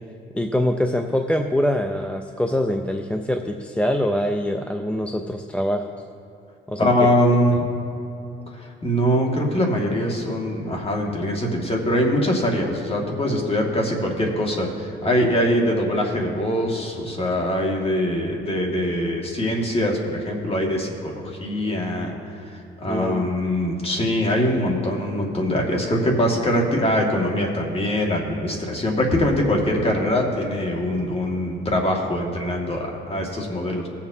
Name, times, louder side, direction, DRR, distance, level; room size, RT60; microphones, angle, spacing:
voice 1, 0.4-5.9 6.7-6.9 22.9-23.2, left 1 dB, 5° left, 4 dB, 0.6 m, -24 dB
voice 2, 6.8-7.7 8.5-22.1 22.4-33.9, equal, 30° left, 0 dB, 2.0 m, -23 dB
20.0 x 7.2 x 2.8 m, 2.7 s
cardioid pair, 90°, 20 cm